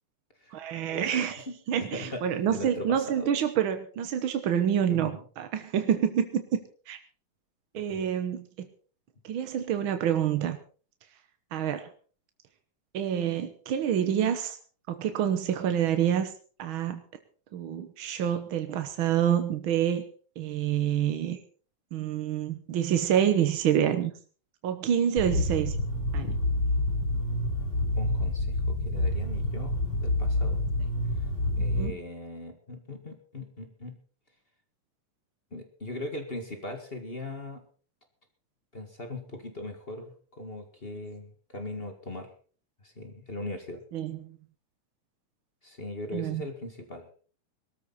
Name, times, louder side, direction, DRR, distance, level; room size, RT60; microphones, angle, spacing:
voice 1, 0.5-6.4 6.9-7.0 7.7-8.7 9.2-10.6 11.5-11.9 12.9-14.6 14.9-16.3 16.6-17.0 17.5-20.0 20.4-21.4 21.9-24.1 24.6-25.8 26.1-26.4 31.7-32.0 43.9-44.4 46.1-46.5, right 9 dB, 65° right, 8 dB, 1.3 m, -27 dB
voice 2, 2.5-3.3 4.9-5.2 7.7-8.0 27.9-30.6 31.6-33.9 35.5-37.6 38.7-42.3 42.8-43.8 45.6-47.1, left 2 dB, 25° left, 5 dB, 1.5 m, -39 dB
sound 1, 25.2-31.9, left 1 dB, 40° left, 5.6 m, -28 dB
20.0 x 13.5 x 4.1 m, 0.41 s
omnidirectional pair, 3.6 m